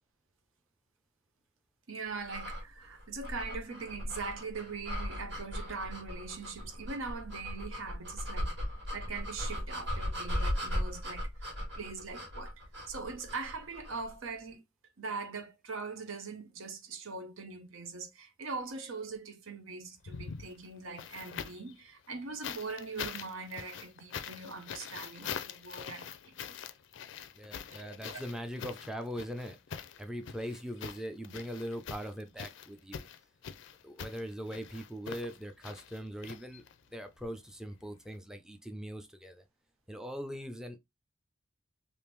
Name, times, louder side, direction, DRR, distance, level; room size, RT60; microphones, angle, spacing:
voice 1, 1.9-11.3 11.8-14.6 15.0-26.6 27.8-28.3, right 4 dB, 80° right, 0.8 m, -42 dB
sound 1, 2.2-14.1, equal, 60° right, 1.7 m, -38 dB
sound 2, 20.0-21.7 22.4-36.9 38.1-38.2, left 7 dB, 65° left, 0.4 m, -44 dB
voice 2, 27.3-33.0 33.8-36.6 36.9-39.4 39.9-40.8, equal, 5° right, 0.4 m, -41 dB
3.5 x 2.5 x 3.0 m
head